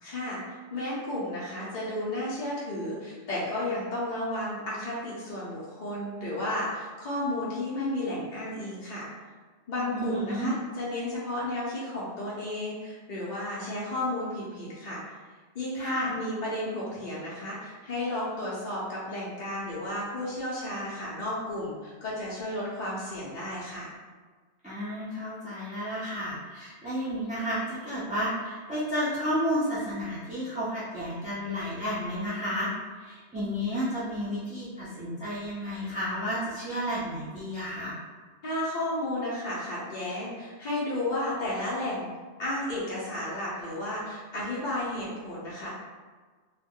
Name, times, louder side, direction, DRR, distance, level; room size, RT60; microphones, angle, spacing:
voice 1, 0.0-9.1 9.7-15.0 15.5-23.9 38.4-42.1 42.4-45.7, left 1 dB, 50° left, -7 dB, 0.6 m, -33 dB
voice 2, 9.9-10.5 15.8-16.2 24.6-32.7 33.0-38.0, equal, 10° right, -10 dB, 0.4 m, -32 dB
2.3 x 2.1 x 3.5 m, 1.4 s
omnidirectional pair, 1.2 m